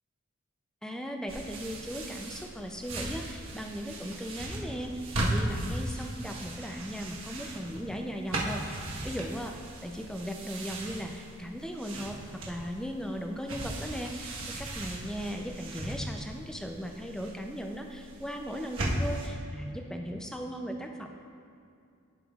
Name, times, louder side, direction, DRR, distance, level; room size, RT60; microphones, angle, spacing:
voice 1, 0.8-9.5 9.8-21.1, equal, 5° left, 3 dB, 0.4 m, -37 dB
sound 1, 1.3-19.3, right 1 dB, 75° right, 1.3 m, -37 dB
15.0 x 5.5 x 2.4 m, 2.5 s
head